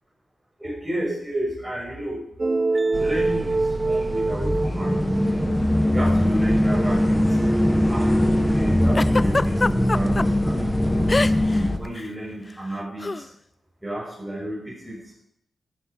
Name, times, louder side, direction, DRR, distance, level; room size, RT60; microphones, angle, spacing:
voice 1, 0.6-2.2 2.9-7.4 7.9-8.3 8.5-10.6 10.9-11.2 11.8-13.3 13.8-15.1, right 1 dB, 5° right, -5 dB, 6.6 m, -32 dB
sound 1, 2.4-6.1, right 3 dB, 35° right, 0.7 m, -25 dB
sound 2, 2.9-11.8, left 1 dB, 10° left, 1.7 m, -21 dB
Giggle, 9.0-10.3 11.1-11.6 11.9-12.1 13.0-13.2, left 3 dB, 35° left, 0.4 m, -23 dB
16.0 x 11.5 x 4.7 m, 0.74 s
cardioid pair, 55°, 0 cm